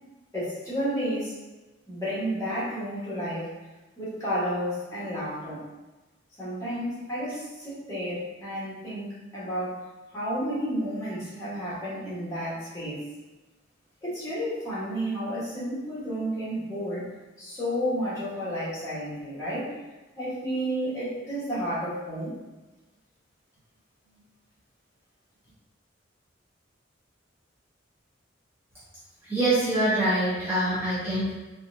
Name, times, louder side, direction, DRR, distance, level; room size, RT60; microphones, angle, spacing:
voice 1, 0.3-1.3 1.9-3.5 4.0-5.6 6.4-9.8 10.1-13.0 14.0-17.1 17.4-19.7 20.2-22.3, equal, 15° left, -10 dB, 1.4 m, -31 dB
voice 2, 29.3-31.3, right 1 dB, 10° right, -12 dB, 0.8 m, -24 dB
4.0 x 2.4 x 2.7 m, 1.1 s
head